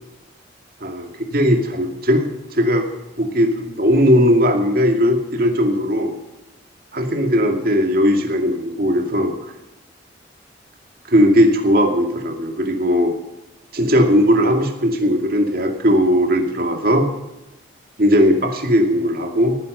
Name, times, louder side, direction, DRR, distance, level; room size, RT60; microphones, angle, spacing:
voice 1, 0.8-2.9 3.2-6.1 6.9-9.3 11.1-13.1 13.7-17.1 18.0-19.6, equal, 50° right, 3 dB, 2.3 m, -18 dB
18.0 x 10.5 x 6.7 m, 1.0 s
head